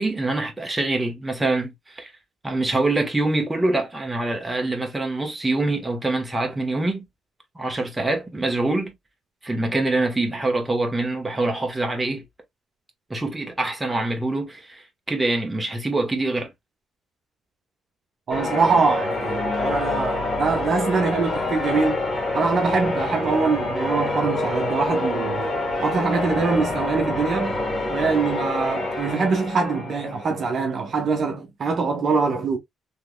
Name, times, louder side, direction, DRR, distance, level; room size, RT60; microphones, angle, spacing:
voice 1, 0.0-2.1 2.4-7.1 7.5-8.9 9.4-12.2 13.1-14.8 15.1-16.5, right 2 dB, 15° right, 1.4 m, -25 dB
Church bell, 18.3-30.6, left 2 dB, 25° left, 2.0 m, -26 dB
voice 2, 18.3-22.0 22.3-25.5 25.8-27.5 27.9-32.6, right 4 dB, 55° right, 0.9 m, -23 dB
3.4 x 3.2 x 2.3 m
cardioid pair, 90°, 0 cm